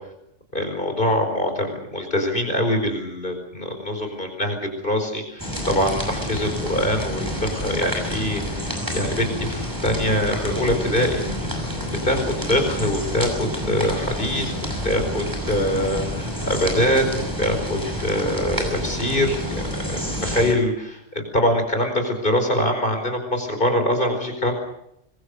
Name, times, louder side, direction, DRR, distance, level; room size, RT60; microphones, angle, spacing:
voice 1, 0.5-11.2 11.9-24.6, equal, 45° left, 5 dB, 4.9 m, -24 dB
sound 1, 5.4-20.5, equal, 15° right, 6.0 m, -28 dB
25.0 x 22.0 x 6.7 m, 0.79 s
omnidirectional pair, 1.3 m